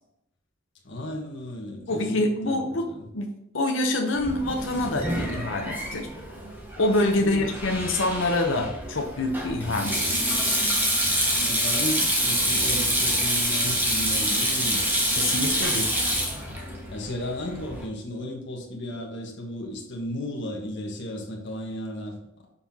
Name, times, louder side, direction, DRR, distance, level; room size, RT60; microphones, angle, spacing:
voice 1, 0.8-2.6 2.9-3.1 7.2-7.5 11.4-14.8 15.2-15.5 16.9-22.1, left 1 dB, 65° left, -1 dB, 1.5 m, -34 dB
voice 2, 1.9-6.1 6.8-10.2 15.1-15.9, left 2 dB, 80° left, 3 dB, 0.8 m, -26 dB
Sink (filling or washing), 4.2-17.8, equal, 10° right, 1.4 m, -26 dB
6.8 x 5.7 x 2.8 m, 0.80 s
head